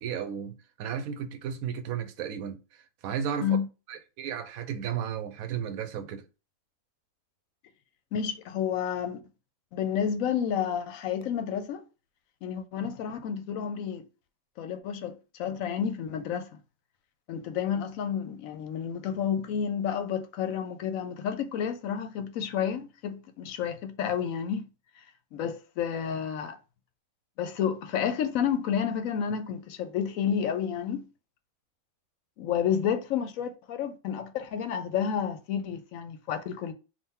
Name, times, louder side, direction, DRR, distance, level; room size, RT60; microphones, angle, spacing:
voice 1, 0.0-2.6 3.0-3.6 3.9-6.2, right 8 dB, 80° right, 1.0 m, -34 dB
voice 2, 8.1-9.2 9.7-11.8 12.4-14.0 14.6-16.5 17.3-24.7 25.3-26.6 27.4-31.1 32.4-36.7, left 8 dB, 75° left, 1.0 m, -30 dB
3.7 x 2.5 x 4.2 m
omnidirectional pair, 1.5 m